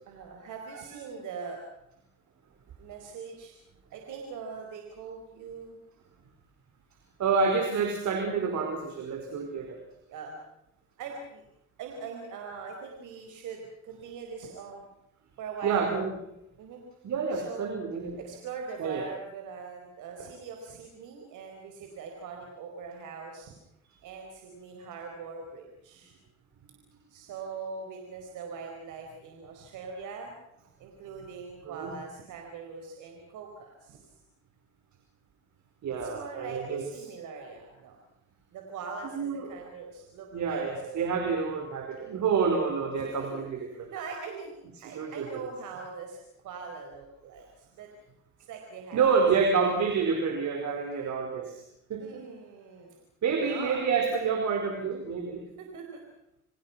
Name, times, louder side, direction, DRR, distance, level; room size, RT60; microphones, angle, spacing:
voice 1, 0.1-1.6 2.8-3.5 3.9-5.8 10.1-10.4 11.0-11.4 11.8-14.8 15.4-15.9 16.6-16.8 17.3-17.6 18.2-23.5 24.0-26.1 27.1-30.3 30.8-34.1 36.0-38.0 38.5-40.6 41.1-41.2 43.0-43.4 43.7-44.6 44.8-46.2 46.4-47.9 48.4-49.3 52.0-53.0 53.4-53.8 55.6-56.0, right 5 dB, 85° right, 2 dB, 4.8 m, -42 dB
voice 2, 7.2-9.8 15.6-16.1 17.0-18.2 18.8-19.0 31.6-31.9 35.8-36.8 39.1-39.5 40.3-43.9 44.8-45.3 48.9-51.5 51.9-52.0 53.2-55.4, right 5 dB, 70° right, 4 dB, 5.0 m, -28 dB
29.0 x 24.5 x 5.9 m, 0.82 s
cardioid pair, 90°, 30 cm